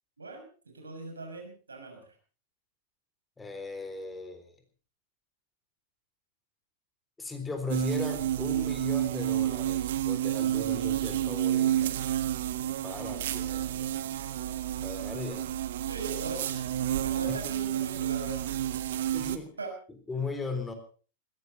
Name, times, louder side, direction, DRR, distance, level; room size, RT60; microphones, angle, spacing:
voice 1, 0.2-2.1 15.9-16.6 17.0-18.7 19.6-19.7, right 3 dB, 80° right, 3 dB, 6.7 m, -40 dB
voice 2, 3.4-4.5 7.2-12.0 12.8-13.9 14.8-15.5 17.3-17.4 19.1-19.5 20.1-20.7, left 4 dB, 10° left, 7 dB, 3.8 m, -37 dB
sound 1, 7.7-19.4, right 12 dB, 60° right, 1.5 m, -30 dB
20.5 x 16.5 x 4.1 m, 0.39 s
figure-of-eight pair, 95°, 0 cm